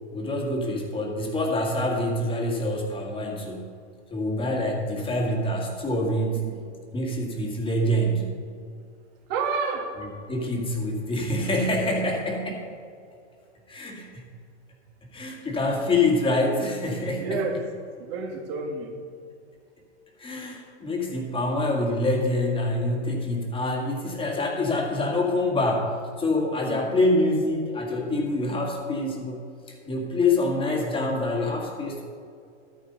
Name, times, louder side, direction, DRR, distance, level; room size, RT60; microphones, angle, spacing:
voice 1, 0.1-3.7 4.1-6.4 6.9-8.4 10.3-12.7 13.7-14.2 15.1-17.4 20.2-32.0, left 1 dB, 15° left, 0 dB, 1.9 m, -26 dB
voice 2, 9.3-10.0 17.2-17.6 18.0-19.0 26.6-27.0, right 4 dB, 50° right, 1 dB, 2.3 m, -30 dB
12.0 x 9.7 x 4.0 m, 2.4 s
hypercardioid pair, 130°, 36 cm